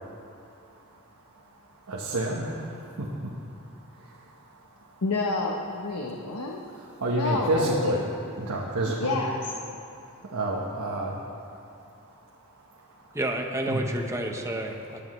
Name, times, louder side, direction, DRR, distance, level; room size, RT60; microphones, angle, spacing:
voice 1, 1.9-3.3 7.0-8.0 8.4-9.2 10.3-11.2 13.7-13.9, right 1 dB, 85° right, -3 dB, 1.2 m, -28 dB
voice 2, 5.0-6.7 7.1-8.0 8.8-9.4, left 3 dB, 90° left, 0 dB, 0.9 m, -29 dB
voice 3, 13.1-15.0, right 1 dB, 15° right, 2 dB, 0.9 m, -30 dB
20.5 x 9.9 x 3.2 m, 2.6 s
head